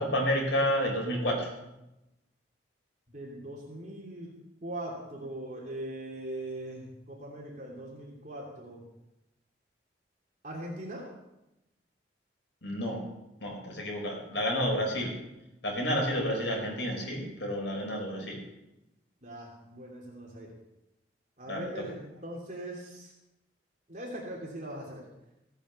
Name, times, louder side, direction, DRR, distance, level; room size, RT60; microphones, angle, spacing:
voice 1, 0.0-1.5 12.6-13.0 13.4-15.1 15.6-18.4 21.5-21.8, equal, 75° left, 0 dB, 4.9 m, -30 dB
voice 2, 3.1-4.3 4.6-8.8 10.4-11.1 19.2-20.5 21.4-23.1 23.9-25.0, right 1 dB, 40° right, -3 dB, 3.0 m, -40 dB
16.5 x 9.0 x 6.8 m, 0.94 s
head